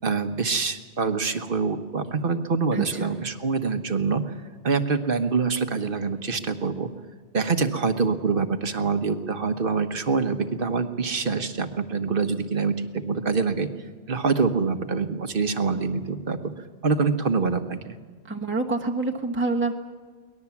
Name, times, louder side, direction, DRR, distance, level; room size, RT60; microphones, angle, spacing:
voice 1, 0.0-4.4 4.6-6.9 7.3-13.7 14.1-16.5 16.8-18.0, right 4 dB, 55° right, 8 dB, 1.4 m, -25 dB
voice 2, 2.7-3.1 18.3-19.7, right 3 dB, 10° right, 1 dB, 1.2 m, -27 dB
23.5 x 19.5 x 7.3 m, 1.5 s
omnidirectional pair, 1.1 m